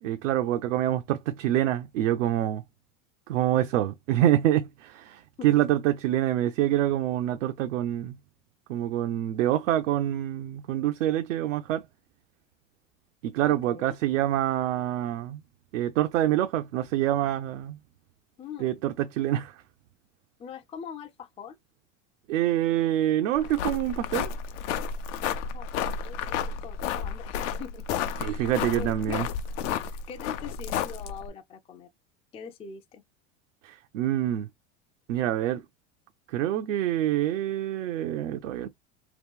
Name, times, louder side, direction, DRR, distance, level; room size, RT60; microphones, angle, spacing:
voice 1, 0.0-2.6 3.3-8.2 8.7-11.8 13.2-15.4 15.7-17.8 18.6-19.6 22.3-24.3 28.2-29.3 33.6-34.5 35.1-35.6 36.3-38.7, right 12 dB, 85° right, 0.5 m, -26 dB
voice 2, 13.4-14.0 18.4-18.8 20.4-21.6 25.5-28.5 28.8-29.3 29.9-31.9 32.3-33.0, left 7 dB, 15° left, 0.4 m, -43 dB
sound 1, 23.4-31.3, left 7 dB, 75° left, 0.7 m, -32 dB
2.9 x 2.3 x 3.4 m
hypercardioid pair, 95°, 37 cm